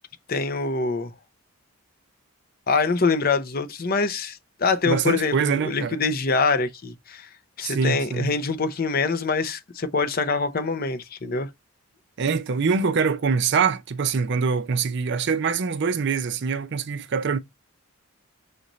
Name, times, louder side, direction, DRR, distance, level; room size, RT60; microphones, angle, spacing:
voice 1, 0.3-1.1 2.7-7.3 7.6-11.5, left 4 dB, 40° left, 0.6 m, -24 dB
voice 2, 4.8-6.0 7.6-8.3 12.2-17.4, right 5 dB, 50° right, 0.4 m, -24 dB
6.4 x 2.6 x 3.0 m
head